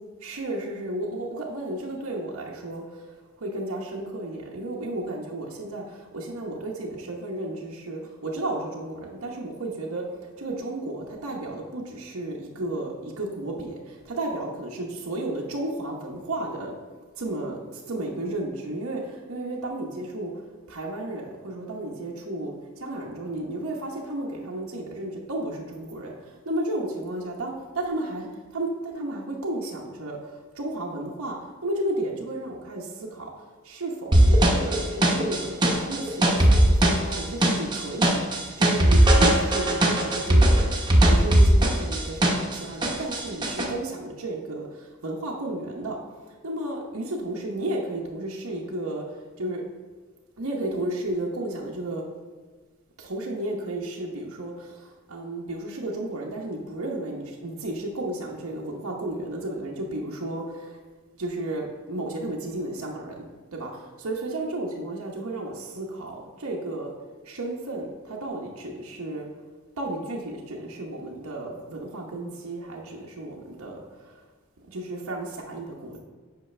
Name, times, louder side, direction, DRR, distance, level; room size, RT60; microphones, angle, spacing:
voice 1, 0.2-3.0 3.4-10.1 10.4-16.8 17.1-20.4 20.7-38.2 38.6-46.0 46.4-49.0 49.4-49.6 50.4-52.0 53.0-60.8 61.2-66.9 67.2-69.3 69.8-74.1 74.7-76.0, right 1 dB, 85° right, -2 dB, 1.0 m, -33 dB
sound 1, 34.1-42.6 42.8-43.7, right 1 dB, 20° right, 0.9 m, -18 dB
8.2 x 5.7 x 3.3 m, 1.4 s
head